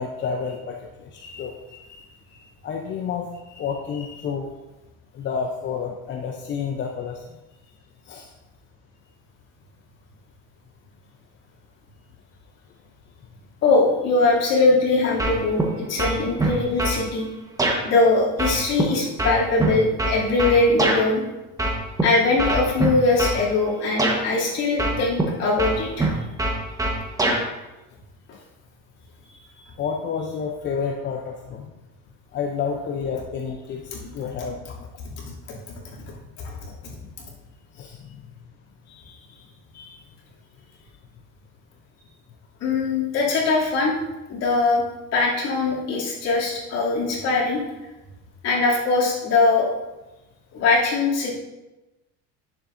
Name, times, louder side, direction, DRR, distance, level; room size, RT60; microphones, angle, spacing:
voice 1, 0.0-1.1 1.4-1.5 2.6-3.3 3.6-4.5 5.1-7.2 8.0-8.3 16.0-16.2 29.8-31.7 32.3-34.6 37.7-38.2, left 6 dB, 35° left, 2 dB, 0.7 m, -29 dB
voice 2, 1.7-2.0 13.6-17.3 17.8-21.2 22.0-26.1 29.5-29.6 35.5-35.6 36.4-36.6 39.7-39.9 42.6-43.9 44.3-44.8 45.1-47.6 48.4-49.7 50.5-51.4, left 3 dB, 55° left, -5 dB, 2.9 m, -21 dB
sound 1, 15.2-15.7 16.0-17.0 17.6-17.8 18.4-21.0 21.6-22.0 22.4-23.4 24.0-24.2 24.8-25.3 25.6-27.4, right 2 dB, 10° right, 1.3 m, -23 dB
10.0 x 7.1 x 2.6 m, 1.0 s
supercardioid pair, 120°, 31 cm